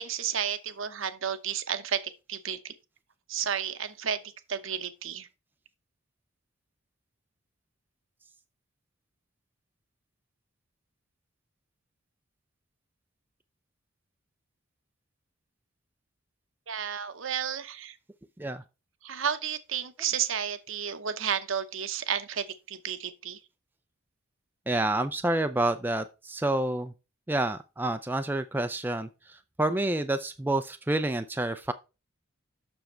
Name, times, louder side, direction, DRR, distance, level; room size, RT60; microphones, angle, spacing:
voice 1, 0.0-2.7 3.3-4.2 4.5-5.3 16.7-18.0 19.0-23.4, right 8 dB, 65° right, 0.8 m, -32 dB
voice 2, 24.7-26.9 27.3-31.7, right 2 dB, 10° right, 0.4 m, -28 dB
7.1 x 6.3 x 4.4 m
head